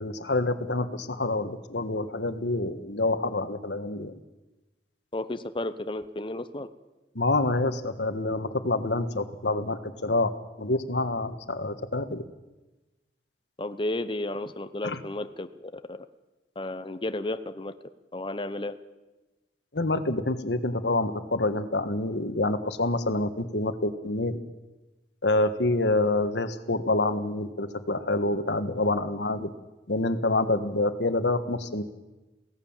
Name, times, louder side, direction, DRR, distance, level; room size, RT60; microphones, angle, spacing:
voice 1, 0.0-4.2 7.1-10.3 10.6-12.2 14.8-15.0 19.7-24.4 25.2-29.5 29.9-31.8, left 2 dB, 75° left, 10 dB, 1.5 m, -27 dB
voice 2, 5.1-6.7 13.6-16.0 16.6-17.7 18.1-18.7, left 1 dB, 30° left, 11 dB, 0.9 m, -33 dB
23.5 x 17.0 x 7.4 m, 1.1 s
head